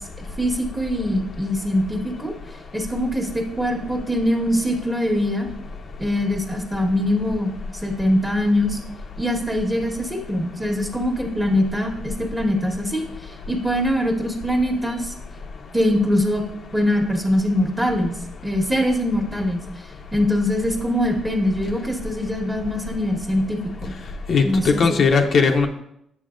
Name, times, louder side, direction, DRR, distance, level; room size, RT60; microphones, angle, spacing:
voice 1, 0.4-2.3 2.7-5.5 6.0-7.5 7.8-8.8 9.2-15.1 15.7-16.4 16.7-18.1 18.4-19.6 20.1-23.9 24.4-25.0, left 1 dB, 10° right, 1 dB, 1.4 m, -22 dB
voice 2, 24.3-25.7, left 5 dB, 55° left, 3 dB, 0.7 m, -18 dB
8.4 x 7.0 x 2.5 m, 0.77 s
cardioid pair, 90°, 0 cm